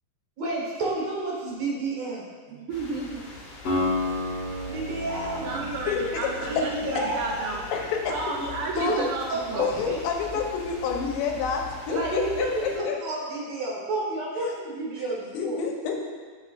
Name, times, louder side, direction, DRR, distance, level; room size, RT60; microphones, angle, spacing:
voice 1, 0.4-2.6 4.7-5.9 6.4-7.6 8.8-10.0 11.9-15.6, right 2 dB, 55° right, -5 dB, 2.2 m, -30 dB
voice 2, 2.5-3.4 3.7-4.0 5.4-7.6 8.1-9.7, right 3 dB, 75° right, -2 dB, 2.1 m, -32 dB
sound 1, 2.7-12.8, left 3 dB, 70° left, 2.5 m, -43 dB
Acoustic guitar, 3.7-7.8, left 2 dB, 45° left, 2.3 m, -32 dB
voice 3, 5.9-6.2 7.7-8.1 8.8-9.0 9.6-13.0 15.3-16.0, left 6 dB, 90° left, 1 dB, 2.6 m, -28 dB
9.2 x 5.6 x 2.4 m, 1.5 s
omnidirectional pair, 4.1 m